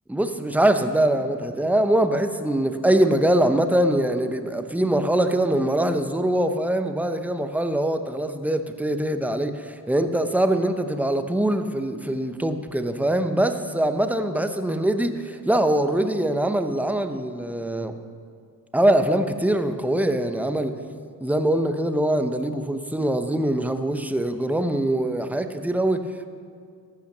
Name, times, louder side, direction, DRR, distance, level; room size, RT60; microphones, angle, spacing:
voice 1, 0.1-17.9 18.7-20.8 21.2-26.3, right 1 dB, 5° right, 8 dB, 0.8 m, -23 dB
14.5 x 5.8 x 6.7 m, 2.2 s
supercardioid pair, 70°, 39 cm